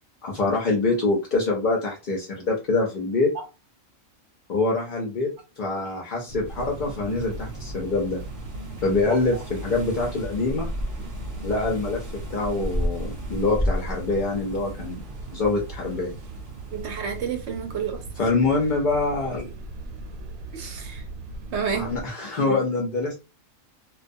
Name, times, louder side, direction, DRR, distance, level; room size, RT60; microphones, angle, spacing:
voice 1, 0.2-3.3 4.5-5.3 5.6-8.2 8.8-10.8 11.4-12.0 12.3-15.0 15.3-16.2 18.2-19.5 21.7-23.1, left 3 dB, 60° left, 0.5 m, -25 dB
sound 1, 6.3-22.0, right 2 dB, 90° right, 1.0 m, -38 dB
sound 2, 6.4-17.2, equal, 15° right, 0.8 m, -34 dB
voice 2, 9.0-9.4 16.7-18.0 20.5-21.1 21.5-21.9 22.4-22.6, right 6 dB, 65° right, 0.8 m, -30 dB
2.2 x 2.2 x 2.5 m
omnidirectional pair, 1.4 m